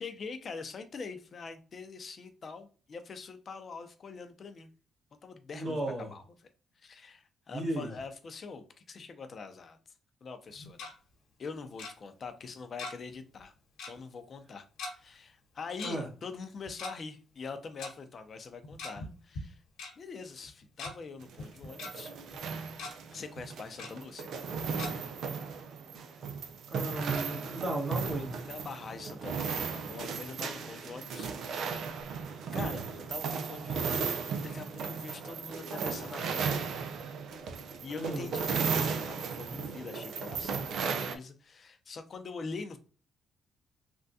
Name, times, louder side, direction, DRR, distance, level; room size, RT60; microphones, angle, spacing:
voice 1, 0.0-4.7 5.2-6.2 6.8-9.8 10.2-10.9 11.4-13.5 13.9-14.6 14.9-19.6 20.0-22.1 23.1-24.3 28.5-31.8 32.5-36.8 37.4-42.8, left 4 dB, 45° left, 8 dB, 0.6 m, -44 dB
voice 2, 5.5-6.1 7.5-7.9 15.8-16.1 26.7-28.5 38.0-38.2, right 1 dB, 45° right, -2 dB, 1.5 m, -35 dB
Tick-tock, 10.5-10.9 11.8-11.9 12.8-13.1 13.4-13.5 13.8-14.0 14.8-14.9 15.8-15.9 16.7-16.9 17.8-17.9 18.6-19.1 19.3-19.4 19.8-19.9 20.5-20.9 21.4-21.9 22.3-22.4 22.7-22.9 23.8-23.9 24.8-24.9, left 3 dB, 85° left, 1.1 m, -40 dB
sound 1, 21.2-41.2, right 5 dB, 70° right, 0.4 m, -35 dB
3.5 x 2.3 x 2.6 m, 0.37 s
cardioid pair, 90°, 0 cm